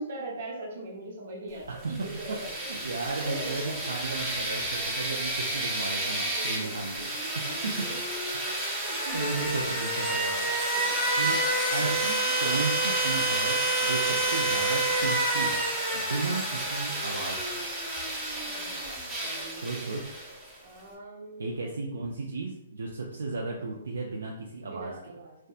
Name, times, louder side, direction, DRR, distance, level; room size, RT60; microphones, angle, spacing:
voice 1, 0.0-2.8 3.2-3.8 6.3-6.9 7.2-7.4 7.8-8.0 8.6-9.2 10.7-11.5 11.8-12.0 12.2-12.3 14.0-14.4 18.4-19.6 20.6-21.9 23.8-23.9 24.6-25.3, right 2 dB, 60° right, -2 dB, 0.8 m, -41 dB
sound 1, 1.8-20.5, right 1 dB, 20° right, 0.7 m, -29 dB
voice 2, 2.6-7.2 7.6-7.9 9.1-10.5 11.2-11.4 11.7-17.6 19.5-20.1 21.4-25.0, right 3 dB, 80° right, -2 dB, 0.4 m, -34 dB
2.6 x 2.1 x 2.3 m, 0.84 s
hypercardioid pair, 135°, 0 cm